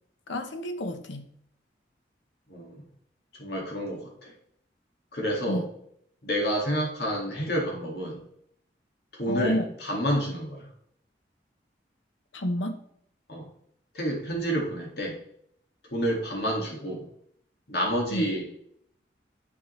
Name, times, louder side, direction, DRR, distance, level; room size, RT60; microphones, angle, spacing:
voice 1, 0.3-1.4 5.5-5.6 9.3-9.7 12.3-12.8 18.1-18.3, left 1 dB, 90° left, 0.9 m, -30 dB
voice 2, 2.5-2.8 3.4-4.3 5.1-5.6 6.2-8.2 9.2-10.7 13.3-13.5 13.9-15.2 15.9-17.0 17.7-18.5, equal, 60° left, 1.9 m, -29 dB
9.4 x 5.4 x 3.1 m
head